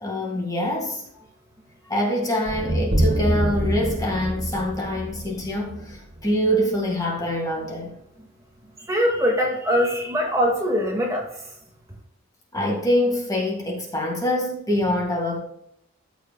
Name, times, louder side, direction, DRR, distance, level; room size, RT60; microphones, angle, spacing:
voice 1, 0.0-1.0 1.9-8.0 12.5-15.4, left 1 dB, 15° left, 1.9 m, -25 dB
sound 1, 2.5-6.6, right 1 dB, 50° right, 1.7 m, -26 dB
voice 2, 8.9-11.3, equal, 15° right, 1.8 m, -22 dB
14.5 x 6.3 x 2.3 m
head